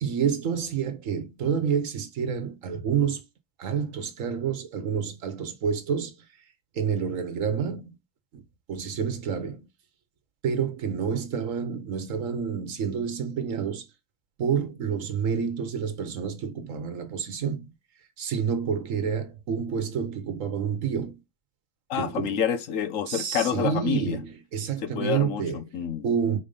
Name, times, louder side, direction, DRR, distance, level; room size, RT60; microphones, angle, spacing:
voice 1, 0.0-3.2 3.6-6.1 6.7-7.9 8.3-8.4 8.7-9.7 10.4-13.9 14.4-17.7 18.2-21.2 21.9-22.4 23.1-25.6 26.0-26.4, right 7 dB, 85° right, 1.3 m, -28 dB
voice 2, 21.9-24.2 24.8-26.0, left 8 dB, 80° left, 1.2 m, -28 dB
5.1 x 4.3 x 5.4 m
omnidirectional pair, 1.3 m